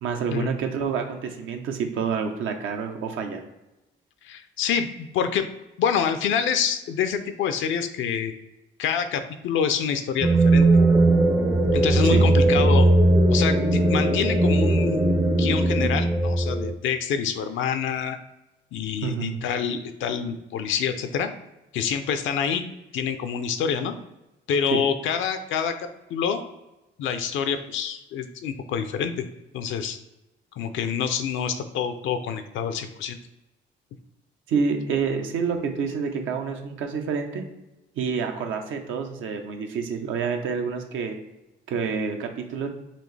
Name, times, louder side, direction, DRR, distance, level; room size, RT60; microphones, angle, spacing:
voice 1, 0.0-3.4 12.0-12.3 19.0-19.4 24.7-24.8 34.5-37.4 37.9-41.2 41.7-42.7, right 6 dB, 85° right, 4 dB, 0.7 m, -28 dB
voice 2, 4.2-5.5 5.8-8.3 8.8-10.7 11.7-12.9 13.3-15.0 15.4-18.2 18.7-21.3 21.7-22.6 22.9-23.9 24.5-26.4 27.0-29.3 29.5-30.0 30.5-33.2, left 7 dB, 75° left, 9 dB, 0.5 m, -27 dB
sound 1, 10.2-16.7, right 2 dB, 15° right, 0.4 m, -19 dB
sound 2, 10.6-15.9, equal, 60° right, 1.4 m, -29 dB
4.2 x 2.8 x 3.2 m, 1.0 s
cardioid pair, 90°, 20 cm